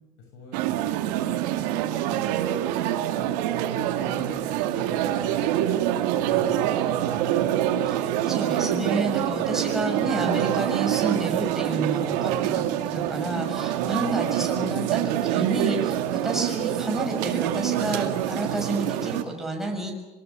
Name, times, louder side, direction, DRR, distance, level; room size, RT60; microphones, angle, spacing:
voice 1, 0.2-0.9 1.2-2.3 2.9-3.4 3.7-5.9 6.3-7.7 9.1-9.6 12.1-12.4 13.6-14.0, left 2 dB, 70° left, 2 dB, 7.3 m, -44 dB
sound 1, 0.5-19.2, right 12 dB, 80° right, 2.2 m, -25 dB
voice 2, 7.9-20.0, right 1 dB, ahead, 0 dB, 7.2 m, -30 dB
25.5 x 23.5 x 8.7 m, 1.1 s
supercardioid pair, 85°, 21 cm